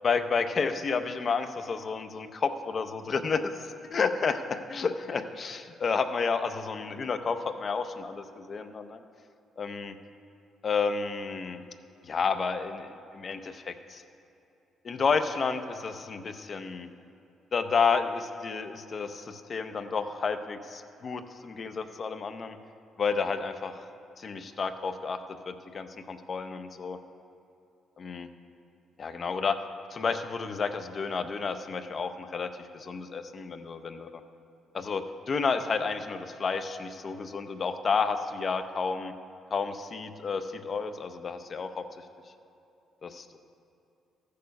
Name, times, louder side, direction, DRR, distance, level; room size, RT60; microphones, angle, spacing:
voice 1, 0.0-9.0 9.6-9.9 10.6-11.6 12.0-14.0 14.8-16.9 17.5-22.6 23.0-23.8 24.2-25.2 25.4-27.0 28.0-28.3 29.0-29.6 29.9-34.2 34.7-39.1 39.5-41.8 43.0-43.4, left 5 dB, 45° left, 8 dB, 0.6 m, -31 dB
14.5 x 6.7 x 5.3 m, 2.7 s
cardioid pair, 90°, 0 cm